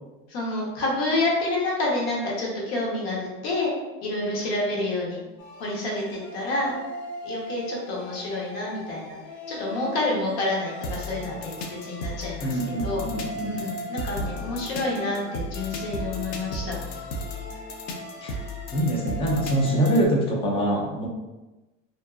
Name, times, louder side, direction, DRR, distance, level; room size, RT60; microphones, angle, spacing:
voice 1, 0.3-3.7 4.0-5.2 5.6-6.7 7.2-9.2 9.5-13.0 13.3-17.0 19.7-19.9, left 2 dB, 85° left, -3 dB, 0.9 m, -28 dB
sound 1, 5.4-20.1, left 1 dB, 70° left, 0.5 m, -35 dB
voice 2, 12.4-13.6 18.2-18.4 18.7-21.1, right 1 dB, 20° left, -1 dB, 0.3 m, -24 dB
2.6 x 2.3 x 2.3 m, 1.1 s
cardioid pair, 155°, 30 cm